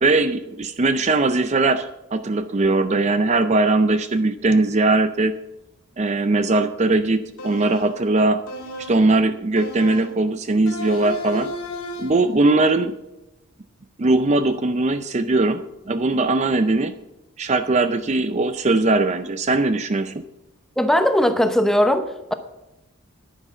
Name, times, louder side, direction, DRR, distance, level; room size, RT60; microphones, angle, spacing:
voice 1, 0.0-5.4 6.0-8.4 8.8-11.5 12.0-12.9 14.0-16.9 17.4-20.2, right 2 dB, 30° right, 10 dB, 0.5 m, -20 dB
sound 1, 7.4-8.0 8.5-9.1 9.6-10.2 10.7-12.3, left 1 dB, 75° left, 2.2 m, -33 dB
voice 2, 20.8-22.3, equal, ahead, 8 dB, 0.8 m, -19 dB
10.5 x 10.0 x 6.9 m, 0.94 s
head